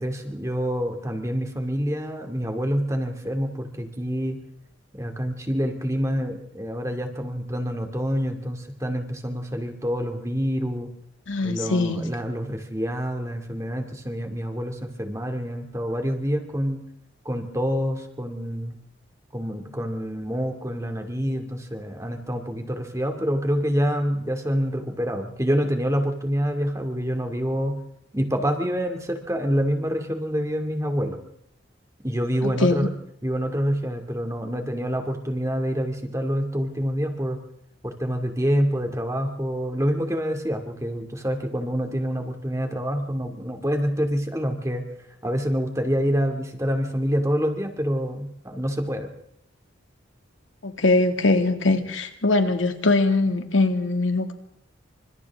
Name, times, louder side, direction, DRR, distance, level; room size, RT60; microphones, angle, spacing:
voice 1, 0.0-4.4 4.9-10.9 11.4-16.8 17.2-18.8 19.3-27.8 28.1-31.2 32.0-32.9 33.2-37.4 37.8-44.8 45.2-49.1, equal, 15° right, 4 dB, 2.4 m, -27 dB
voice 2, 11.3-12.0 32.4-32.9 50.6-54.3, left 2 dB, 80° left, 6 dB, 2.2 m, -22 dB
28.5 x 26.0 x 3.6 m, 0.75 s
head